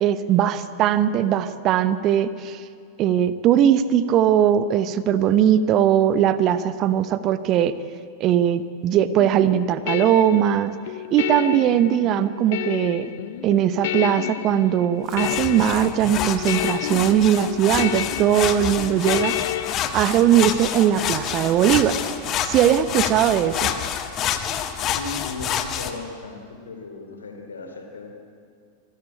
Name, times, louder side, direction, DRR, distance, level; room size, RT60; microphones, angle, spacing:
voice 1, 0.0-2.6 3.0-7.7 8.2-10.7 11.1-13.1 13.4-19.3 19.9-21.9 22.5-23.7, right 10 dB, 35° right, 14 dB, 0.9 m, -20 dB
sound 1, 9.2-19.7, left 14 dB, 55° left, 0.6 m, -30 dB
sound 2, 15.1-25.9, left 9 dB, 35° left, 1.4 m, -28 dB
voice 2, 25.0-28.1, left 3 dB, 70° left, 4 dB, 3.4 m, -36 dB
26.0 x 13.5 x 8.7 m, 2.2 s
figure-of-eight pair, 90°, 0 cm